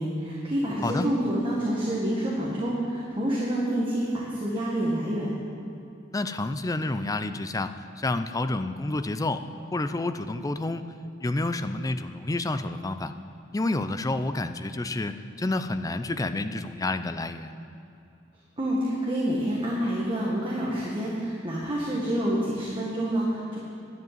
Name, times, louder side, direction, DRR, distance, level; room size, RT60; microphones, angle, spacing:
voice 1, 0.0-5.3 18.6-23.6, right 1 dB, 25° right, -5 dB, 1.6 m, -28 dB
voice 2, 6.1-9.4 9.7-10.9 11.2-13.1 13.5-17.5, left 2 dB, 20° left, 10 dB, 0.4 m, -29 dB
10.5 x 7.5 x 9.3 m, 2.7 s
head